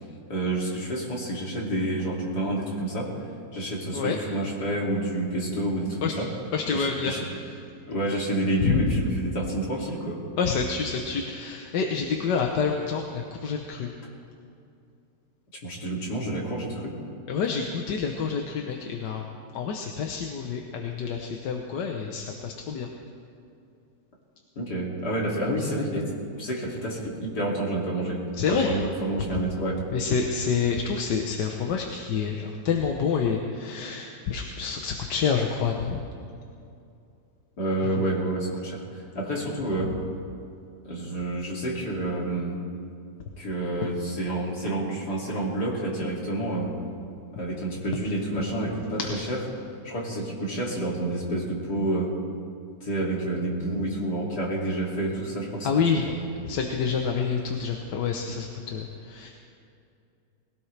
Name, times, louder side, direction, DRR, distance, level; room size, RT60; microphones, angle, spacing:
voice 1, 0.3-3.1 3.5-6.3 6.7-7.2 7.9-10.2 15.6-17.0 24.6-26.1 26.4-28.2 28.5-29.8 37.6-39.9 40.8-42.6 43.4-46.7 47.3-49.0 49.3-49.4 49.8-52.1 52.8-55.7 55.9-56.2, right 1 dB, 70° left, -3 dB, 3.2 m, -29 dB
voice 2, 6.5-7.6 8.6-9.0 10.3-13.9 17.3-19.2 19.5-22.9 28.3-28.7 29.9-36.0 37.9-38.1 49.0-49.1 55.6-56.1 56.5-59.3, left 6 dB, 90° left, 2 dB, 1.6 m, -28 dB
21.0 x 17.0 x 3.4 m, 2.6 s
omnidirectional pair, 1.8 m